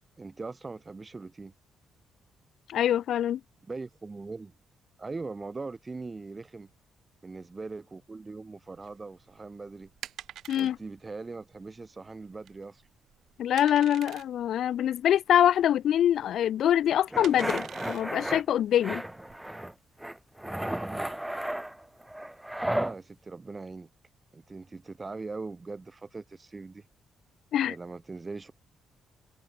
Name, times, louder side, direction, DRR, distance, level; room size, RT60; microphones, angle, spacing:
voice 1, 0.2-1.5 3.7-4.5 5.0-6.7 7.2-9.9 10.5-12.9 20.9-21.1 22.7-23.9 24.3-26.9 27.6-28.5, right 3 dB, 25° right, 6.3 m, -41 dB
voice 2, 2.7-3.4 10.5-10.8 13.4-19.0 27.5-27.7, left 10 dB, 70° left, 1.7 m, -24 dB
sound 1, 8.7-19.4, right 11 dB, 70° right, 6.0 m, -48 dB
sound 2, 17.1-18.4 18.8-19.7 20.0-22.9, right 1 dB, 5° right, 4.5 m, -33 dB
cardioid pair, 90°, 0 cm